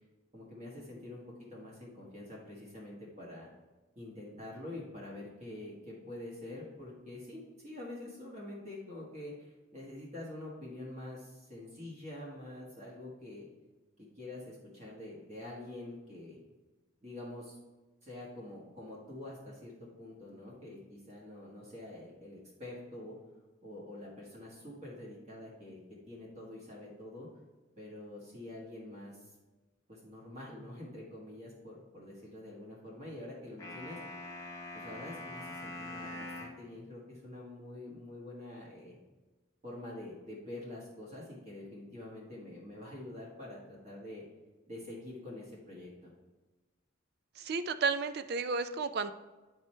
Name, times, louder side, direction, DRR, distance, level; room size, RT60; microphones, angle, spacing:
voice 1, 0.3-1.2 1.5-3.5 3.9-13.4 14.0-16.4 17.0-17.6 18.0-23.1 23.6-25.8 26.1-27.3 27.8-29.3 29.9-34.0 34.7-39.0 39.6-44.2 44.7-46.1, left 1 dB, 35° right, -4 dB, 1.4 m, -46 dB
sound 1, 33.6-36.6, left 2 dB, 15° left, 0.9 m, -43 dB
voice 2, 47.4-49.1, right 4 dB, 50° right, 11 dB, 0.4 m, -32 dB
9.2 x 4.4 x 3.3 m, 1.2 s
head